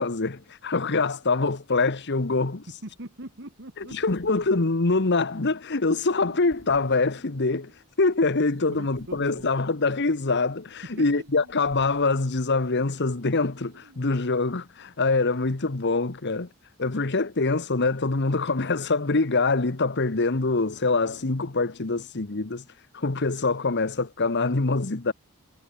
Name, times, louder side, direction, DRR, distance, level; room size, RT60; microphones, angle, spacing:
voice 1, 0.0-2.6 3.8-7.7 8.0-16.5 16.8-22.6 22.9-25.1, left 3 dB, 55° left, 1.2 m, -24 dB
voice 2, 2.7-4.0 8.7-9.5 10.8-11.1, right 1 dB, 55° right, 2.7 m, -41 dB
sound 1, 2.8-13.2, equal, ahead, 7.1 m, -60 dB
sound 2, 6.2-8.0 8.3-10.5 10.9-13.1 13.6-14.1, right 1 dB, 80° right, 5.8 m, -57 dB
head